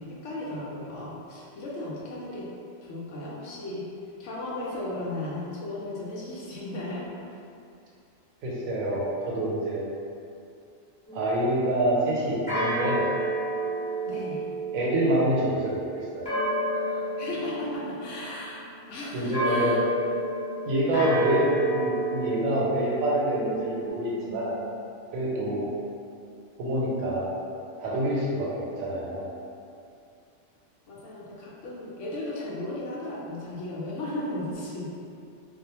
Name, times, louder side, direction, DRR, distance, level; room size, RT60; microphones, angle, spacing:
voice 1, 0.0-2.5 2.8-3.9 4.2-7.4 14.1-14.4 17.2-19.8 20.1-20.2 30.9-34.9, left 1 dB, 70° left, -6 dB, 0.8 m, -35 dB
voice 2, 8.4-9.9 11.1-13.0 14.7-16.3 16.7-17.0 19.1-19.7 20.7-24.5 25.1-25.7 26.6-27.3 27.8-29.3, right 1 dB, 90° right, -5 dB, 1.0 m, -26 dB
sound 1, 11.1-11.9 12.5-18.6 19.3-23.9, right 1 dB, 5° left, 1.1 m, -31 dB
2.3 x 2.1 x 2.8 m, 2.5 s
omnidirectional pair, 1.4 m